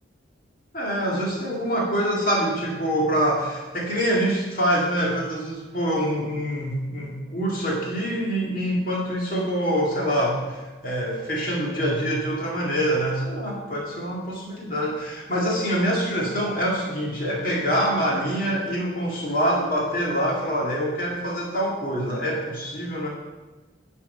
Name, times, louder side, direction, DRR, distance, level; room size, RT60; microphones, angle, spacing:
voice 1, 0.7-23.1, equal, 50° left, -3 dB, 2.1 m, -25 dB
10.5 x 4.6 x 5.4 m, 1.2 s
head